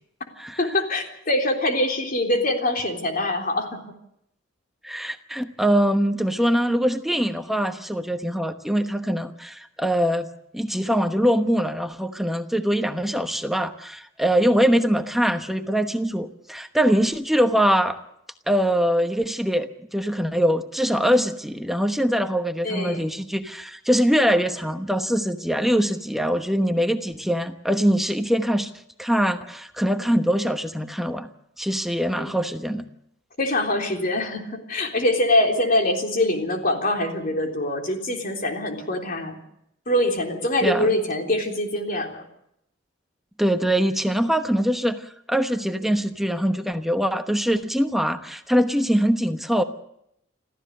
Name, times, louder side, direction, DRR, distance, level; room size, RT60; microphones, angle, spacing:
voice 1, 0.6-3.9 22.6-23.0 32.2-32.4 33.4-39.4 39.9-42.2, left 1 dB, 45° left, 3 dB, 3.6 m, -24 dB
voice 2, 4.8-10.3 10.5-18.0 18.5-28.7 29.0-31.3 31.6-32.9 40.6-40.9 43.4-49.6, equal, ahead, 7 dB, 1.0 m, -23 dB
26.0 x 15.0 x 6.6 m, 0.76 s
head